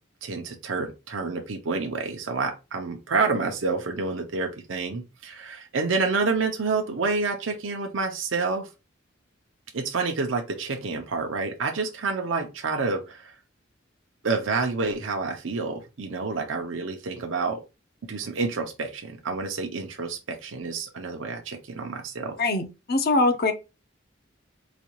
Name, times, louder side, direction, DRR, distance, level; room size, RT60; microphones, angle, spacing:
voice 1, 0.2-8.7 9.7-13.3 14.2-17.6 18.0-22.4, right 4 dB, 80° right, 0.7 m, -28 dB
voice 2, 22.4-23.5, left 2 dB, 55° left, 0.7 m, -23 dB
4.0 x 2.4 x 3.0 m
head